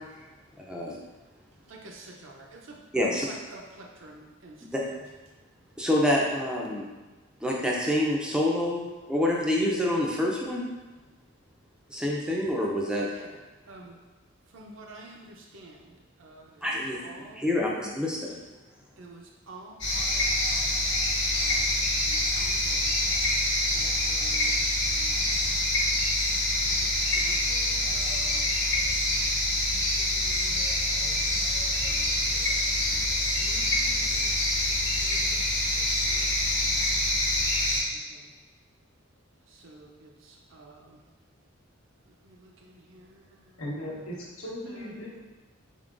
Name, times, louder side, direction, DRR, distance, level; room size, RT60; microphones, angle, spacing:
voice 1, 0.7-1.0 2.9-3.3 4.7-4.8 5.8-6.8 7.4-10.6 11.9-13.1 16.6-18.4, left 1 dB, 5° right, -3 dB, 0.4 m, -27 dB
voice 2, 1.6-2.8 3.3-4.9 13.1-13.4 13.7-14.0 14.5-17.4 19.0-23.0 23.7-25.4 26.7-28.5 29.1-30.6 31.8-32.3 32.7-34.4 34.7-35.5 36.0-36.3 37.9-38.3 39.5-41.0 42.1-43.6 44.7-44.9, right 2 dB, 65° right, 0 dB, 0.6 m, -50 dB
sound 1, 19.8-37.8, left 1 dB, 60° left, 1.1 m, -26 dB
voice 3, 43.6-45.2, left 1 dB, 80° left, -4 dB, 0.9 m, -37 dB
3.6 x 3.6 x 2.5 m, 1.2 s
head